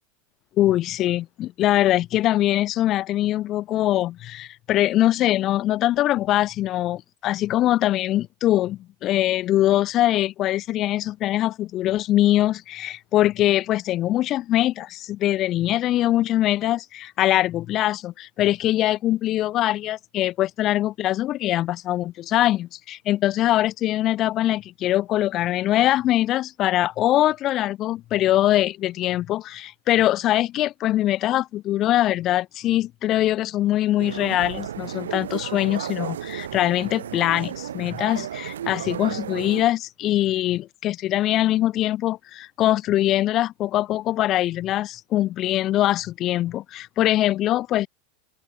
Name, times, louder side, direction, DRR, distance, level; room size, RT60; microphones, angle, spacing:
voice 1, 0.6-47.9, left 14 dB, 45° left, 0.7 m, -22 dB
sound 1, 34.0-39.6, right 10 dB, 85° right, 0.8 m, -33 dB
open air
hypercardioid pair, 105°, 0 cm